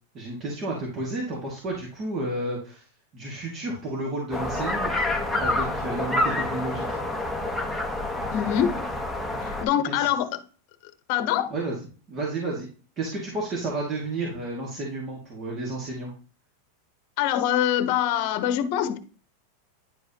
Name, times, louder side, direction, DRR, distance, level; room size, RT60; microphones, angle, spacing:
voice 1, 0.1-2.8 3.1-4.9 5.4-7.0 10.0-10.1 11.5-11.8 12.1-12.7 13.0-16.1, right 2 dB, 30° right, 2.1 m, -31 dB
sound 1, 4.3-9.6, left 2 dB, 5° right, 1.1 m, -28 dB
voice 2, 8.3-8.9 9.4-10.4 11.1-11.5 17.2-19.0, left 10 dB, 50° left, 0.9 m, -24 dB
10.0 x 4.8 x 2.9 m
supercardioid pair, 145°, 0 cm